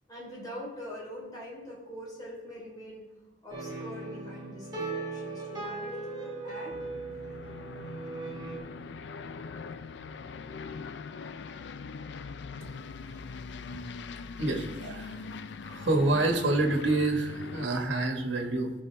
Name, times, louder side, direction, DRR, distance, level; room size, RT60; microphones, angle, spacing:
voice 1, 0.1-3.1 3.4-6.8, left 1 dB, 20° left, -5 dB, 3.5 m, -43 dB
sound 1, 3.5-8.6, right 3 dB, 25° right, 2.1 m, -38 dB
Aircraft, 6.7-17.7, left 5 dB, 65° left, 0.4 m, -42 dB
voice 2, 14.4-15.2 15.6-18.7, right 2 dB, 75° right, 3 dB, 1.3 m, -27 dB
15.5 x 5.4 x 3.4 m, 1.1 s
head